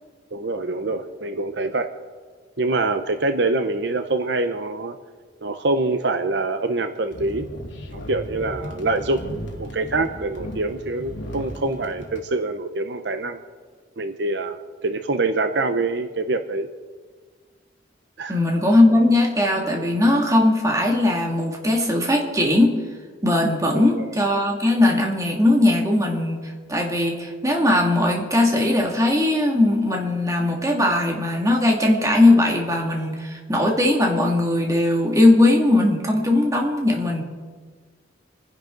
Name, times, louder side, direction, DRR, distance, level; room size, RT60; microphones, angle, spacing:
voice 1, 0.3-1.9 2.6-5.0 5.4-7.5 7.9-9.2 9.6-13.4 14.0-16.7 18.2-18.4 23.8-24.1, right 2 dB, 65° right, 8 dB, 0.8 m, -25 dB
sound 1, 7.1-12.2, left 1 dB, 80° left, 2.5 m, -36 dB
voice 2, 18.3-22.8 23.2-37.2, left 1 dB, 20° right, 0 dB, 2.4 m, -19 dB
28.5 x 10.5 x 4.0 m, 1.5 s
head